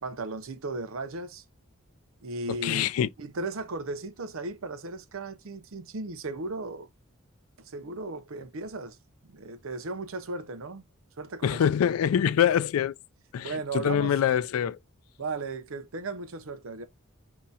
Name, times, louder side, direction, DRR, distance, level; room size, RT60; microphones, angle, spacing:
voice 1, 0.0-1.4 2.2-2.9 3.2-6.9 7.6-9.0 9.2-10.9 11.2-11.6 13.4-14.1 15.2-16.8, right 3 dB, 75° right, 0.7 m, -36 dB
voice 2, 2.5-3.1 11.4-12.9 13.3-14.8, left 9 dB, 85° left, 0.3 m, -25 dB
5.4 x 2.8 x 2.3 m
head